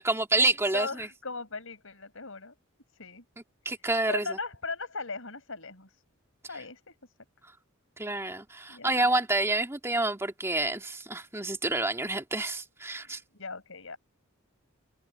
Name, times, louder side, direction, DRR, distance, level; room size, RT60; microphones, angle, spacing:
voice 1, 0.0-1.1 3.7-4.4 8.0-13.2, right 2 dB, 10° right, 2.1 m, -28 dB
voice 2, 0.7-2.5 2.9-3.2 4.1-6.0 6.5-7.1 8.7-9.2 13.0-14.0, left 4 dB, 65° left, 6.6 m, -38 dB
head